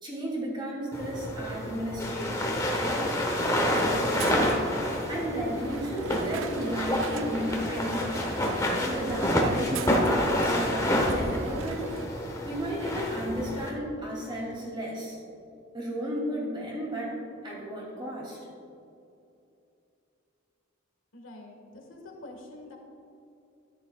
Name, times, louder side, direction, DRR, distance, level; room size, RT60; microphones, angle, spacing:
voice 1, 0.0-3.2 3.6-11.8 12.4-15.2 15.7-17.1 17.4-18.4, equal, 25° right, -4 dB, 2.6 m, -34 dB
sound 1, 0.9-13.7, left 1 dB, 15° left, 0.9 m, -28 dB
Crowd, 3.3-12.1, right 5 dB, 75° right, 0.4 m, -40 dB
voice 2, 21.1-22.8, left 2 dB, 85° left, 1 dB, 1.7 m, -46 dB
13.5 x 11.0 x 2.4 m, 2.7 s
head